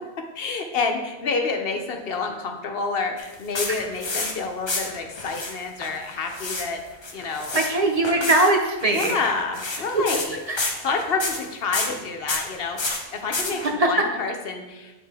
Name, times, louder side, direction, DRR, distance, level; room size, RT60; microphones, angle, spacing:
voice 1, 0.3-6.8 7.1-7.6 8.9-14.9, left 4 dB, 70° left, 4 dB, 0.9 m, -28 dB
sound 1, 3.2-4.4 4.7-5.5 5.8-6.6 6.9-7.7 8.0-8.5 8.8-9.1 9.5-10.3 10.6-11.4 11.7-11.9 12.3-12.5 12.8-13.7, left 3 dB, 30° left, 0.6 m, -29 dB
voice 2, 7.5-9.2 10.5-10.8 13.8-13.9, right 2 dB, 45° right, 2 dB, 0.6 m, -21 dB
8.4 x 4.0 x 3.4 m, 1.1 s
omnidirectional pair, 1.1 m